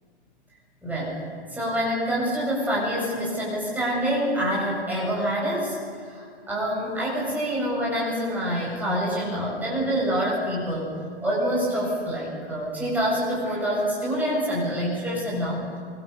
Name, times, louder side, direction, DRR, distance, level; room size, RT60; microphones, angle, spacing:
voice 1, 0.8-1.1 1.5-10.9 11.2-15.6, equal, 5° right, -5 dB, 7.9 m, -26 dB
27.5 x 25.0 x 7.0 m, 2.2 s
hypercardioid pair, 160°, 32 cm